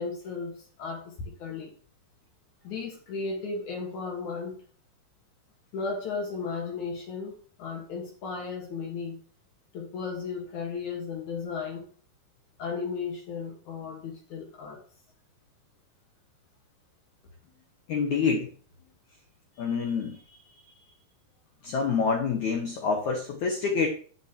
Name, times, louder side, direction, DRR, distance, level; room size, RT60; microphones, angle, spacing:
voice 1, 0.0-1.7 2.6-4.6 5.7-9.2 9.7-11.9 12.6-14.8, left 5 dB, 60° left, 0 dB, 2.1 m, -35 dB
voice 2, 17.9-18.5 19.6-20.2 20.8-20.9 21.6-23.9, left 5 dB, 85° left, 2 dB, 1.6 m, -27 dB
11.5 x 7.1 x 2.9 m, 0.43 s
omnidirectional pair, 5.1 m